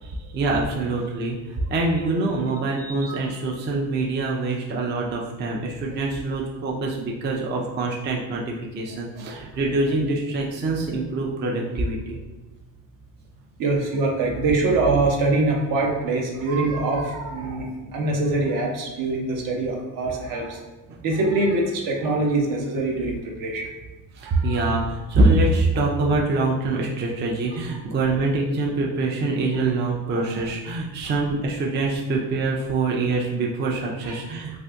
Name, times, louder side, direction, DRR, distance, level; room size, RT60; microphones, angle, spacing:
voice 1, 0.0-12.2 20.9-21.0 24.1-34.6, right 2 dB, 30° right, -2 dB, 0.4 m, -24 dB
voice 2, 2.8-3.2 9.2-9.4 13.6-20.6 21.0-23.6 24.2-24.6 30.4-30.5 34.0-34.1, right 2 dB, 60° right, 0 dB, 0.8 m, -24 dB
2.6 x 2.5 x 3.4 m, 1.1 s
cardioid pair, 115°, 37 cm